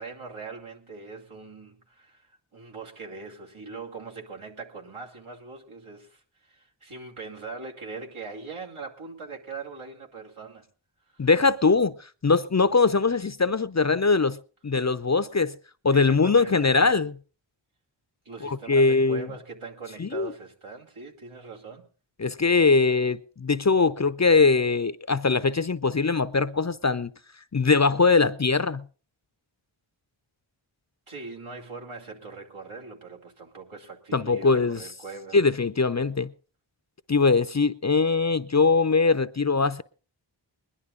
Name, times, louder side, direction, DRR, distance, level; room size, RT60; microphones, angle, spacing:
voice 1, 0.0-10.7 11.1-11.3 15.9-16.8 18.2-21.8 31.1-35.4, right 4 dB, 75° right, 2.6 m, -41 dB
voice 2, 11.2-11.9 12.2-14.4 14.6-15.5 15.8-17.1 18.4-19.3 20.0-20.3 22.2-27.1 27.5-28.8 34.1-34.8 35.3-36.3 37.1-39.8, left 4 dB, 35° left, 0.6 m, -21 dB
21.0 x 11.0 x 3.8 m
wide cardioid pair, 55°, 50 cm